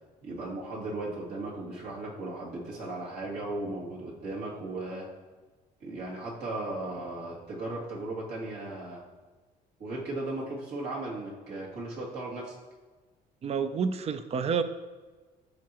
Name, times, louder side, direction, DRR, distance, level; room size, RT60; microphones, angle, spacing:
voice 1, 0.2-5.1 5.8-9.0 9.8-12.6, right 2 dB, 70° right, -4 dB, 2.5 m, -36 dB
voice 2, 13.4-14.6, right 6 dB, 40° right, 11 dB, 0.5 m, -29 dB
14.0 x 4.8 x 3.0 m, 1.3 s
cardioid pair, 110°, 17 cm